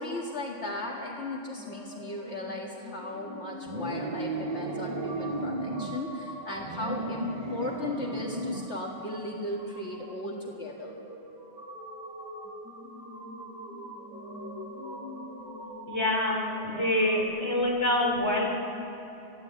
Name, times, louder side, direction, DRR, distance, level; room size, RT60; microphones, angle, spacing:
voice 1, 0.0-11.0, left 2 dB, 60° left, -1 dB, 2.1 m, -36 dB
sound 1, 1.6-17.2, equal, 15° right, 4.4 m, -43 dB
sound 2, 3.7-6.0 6.6-8.8, right 2 dB, 35° right, 1.0 m, -34 dB
voice 2, 15.9-18.5, left 1 dB, 20° left, -1 dB, 3.6 m, -26 dB
25.0 x 16.5 x 8.3 m, 2.9 s
omnidirectional pair, 1.3 m